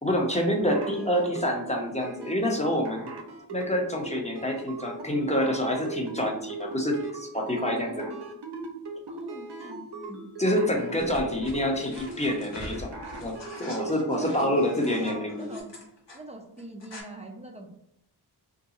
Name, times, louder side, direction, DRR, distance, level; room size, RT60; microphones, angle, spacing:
voice 1, 0.0-3.1 3.5-8.0 10.4-12.9 13.2-15.5, equal, 15° left, 0 dB, 0.8 m, -27 dB
sound 1, 0.6-15.6, right 3 dB, 70° right, 0.7 m, -39 dB
voice 2, 7.5-8.2 9.1-10.3 11.0-11.2 14.1-14.5 15.0-15.7 16.1-17.7, right 1 dB, 15° right, 1 dB, 0.5 m, -41 dB
sound 2, 11.0-16.2 16.6-17.0, left 1 dB, 80° left, 1.0 m, -44 dB
2.6 x 2.2 x 3.8 m, 0.85 s
wide cardioid pair, 45°, 42 cm